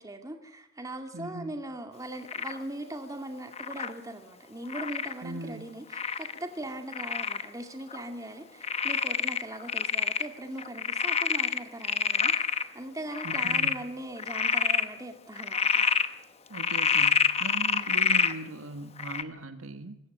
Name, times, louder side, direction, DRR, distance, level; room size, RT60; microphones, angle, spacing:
voice 1, 0.0-15.9, right 1 dB, 15° right, 5 dB, 2.2 m, -40 dB
voice 2, 1.1-1.6 5.2-5.7 13.2-13.9 16.5-20.0, right 2 dB, 85° right, 9 dB, 1.6 m, -40 dB
Frog, 2.3-2.6 3.5-3.9 4.7-5.1 5.9-6.4 6.9-7.4 7.9-8.0 8.6-10.3 10.6-12.6 13.1-13.8 14.2-14.8 15.4-16.1 16.5-18.3 19.0-19.2, left 6 dB, 30° left, 0.9 m, -27 dB
25.0 x 14.0 x 7.8 m, 0.80 s
head